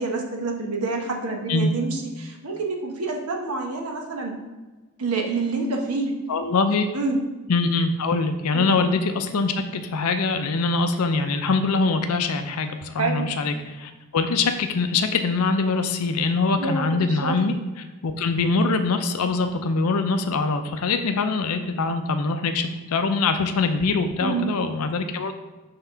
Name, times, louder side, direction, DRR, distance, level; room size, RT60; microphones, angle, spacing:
voice 1, 0.0-4.3 5.0-6.1 6.9-7.2 8.5-8.7 13.0-13.3 16.6-17.4 24.2-24.5, right 3 dB, 90° right, 2 dB, 1.1 m, -27 dB
voice 2, 6.3-6.9 7.5-17.5 18.0-25.3, left 4 dB, 85° left, 7 dB, 0.5 m, -23 dB
5.7 x 3.6 x 5.5 m, 1.2 s
head